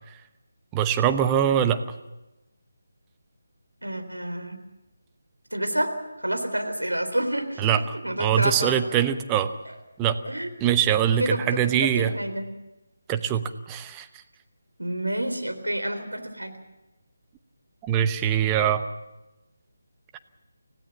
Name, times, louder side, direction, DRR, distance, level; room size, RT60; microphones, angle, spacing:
voice 1, 0.7-1.8 7.6-9.5 10.0-10.2 10.6-12.1 13.1-14.1 17.8-18.8, right 9 dB, 15° right, 9 dB, 0.9 m, -23 dB
voice 2, 3.8-4.6 5.5-5.9 6.2-9.0 9.7-9.8 10.3-10.5 11.2-11.6 11.9-12.5 14.8-16.6, right 1 dB, 85° right, 6 dB, 3.7 m, -29 dB
25.5 x 17.0 x 7.2 m, 1.0 s
figure-of-eight pair, 155°, 0 cm